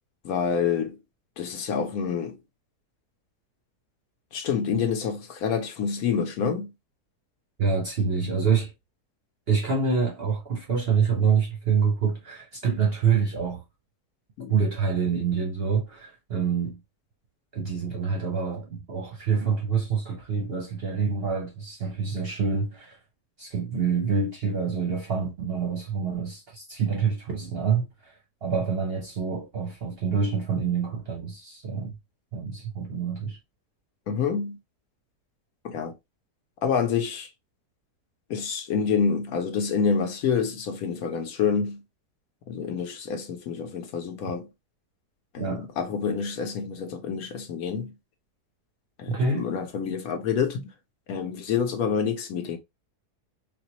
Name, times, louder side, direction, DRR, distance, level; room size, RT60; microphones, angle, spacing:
voice 1, 0.2-1.0 1.4-2.4 4.3-6.7 14.4-14.6 34.1-34.6 35.6-35.9 36.6-37.3 38.3-41.8 42.5-44.5 45.3-47.9 49.0-50.7 51.1-52.6, left 6 dB, 65° left, 1.1 m, -27 dB
voice 2, 7.6-8.7 9.5-13.6 14.5-16.8 17.5-23.0 23.4-27.9 28.4-32.0 32.3-33.4 45.4-45.7 49.1-49.5, right 6 dB, 50° right, 0.8 m, -26 dB
4.0 x 2.3 x 2.8 m
omnidirectional pair, 1.7 m